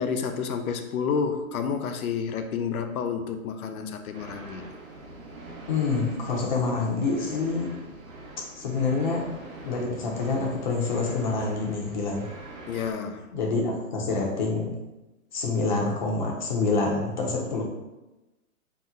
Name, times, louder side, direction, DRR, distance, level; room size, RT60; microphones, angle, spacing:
voice 1, 0.0-4.7 12.7-13.3, left 6 dB, 80° left, 7 dB, 0.6 m, -30 dB
sound 1, 4.1-12.9, right 2 dB, 70° right, 0.9 m, -44 dB
voice 2, 5.7-7.7 8.6-9.3 9.6-12.3 13.3-14.8 15.3-17.6, left 3 dB, 35° left, -1 dB, 0.5 m, -27 dB
2.8 x 2.0 x 3.5 m, 1.0 s
hypercardioid pair, 160°, 42 cm